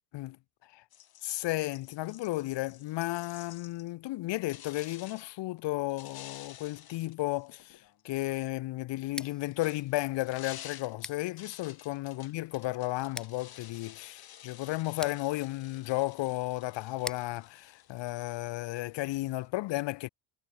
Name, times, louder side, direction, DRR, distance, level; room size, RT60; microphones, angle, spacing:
sound 1, 0.9-3.9 4.5-5.3 5.9-8.0 9.1-19.5, left 11 dB, 50° left, 7.8 m, -52 dB
voice 1, 1.2-20.1, left 18 dB, 70° left, 1.6 m, -33 dB
Scissors, 9.0-18.8, equal, ahead, 3.9 m, -49 dB
cardioid pair, 125°, 45 cm